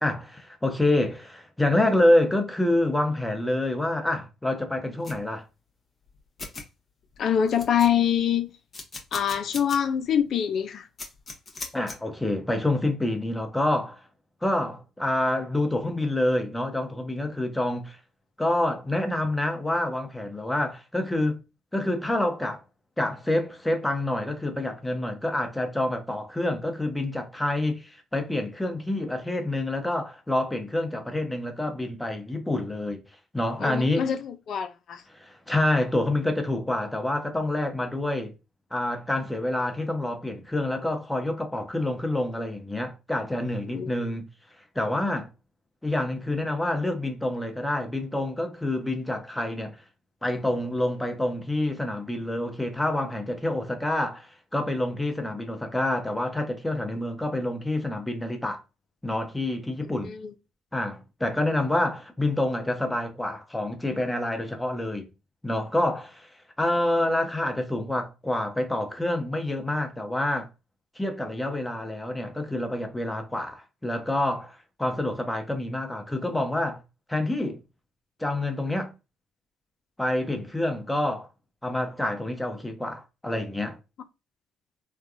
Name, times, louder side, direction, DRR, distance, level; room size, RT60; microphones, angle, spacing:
voice 1, 0.0-5.5 11.7-14.0 14.4-18.0 18.4-21.4 21.7-22.6 23.0-33.0 33.3-34.1 35.1-38.3 38.7-44.3 44.7-45.3 45.8-49.8 50.2-58.6 59.0-60.2 60.7-65.1 65.4-70.5 70.9-76.8 77.1-77.6 78.2-78.9 80.0-81.3 81.6-83.8, left 1 dB, 10° left, 0.9 m, -27 dB
sound 1, 5.0-5.2 6.1-6.2 6.4-6.6 7.1-7.2 7.5-8.2 8.7-9.8 10.2-10.3 11.0-12.0, left 3 dB, 40° left, 1.0 m, -38 dB
voice 2, 7.2-8.5 9.1-10.9 33.6-35.0 43.7-44.0 59.8-60.3, left 8 dB, 60° left, 0.4 m, -25 dB
3.3 x 2.2 x 2.5 m
hypercardioid pair, 55°, 0 cm